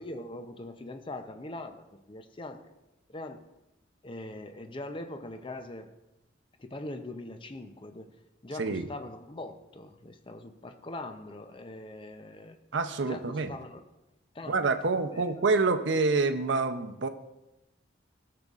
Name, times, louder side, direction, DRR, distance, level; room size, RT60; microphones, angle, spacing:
voice 1, 0.0-2.7 3.1-3.4 4.0-5.9 6.6-8.2 8.4-12.6 13.0-13.8 14.3-15.4, left 2 dB, 30° left, 8 dB, 0.5 m, -42 dB
voice 2, 12.7-13.5 14.5-17.1, right 3 dB, 75° right, 8 dB, 0.6 m, -27 dB
14.5 x 6.7 x 2.4 m, 0.97 s
head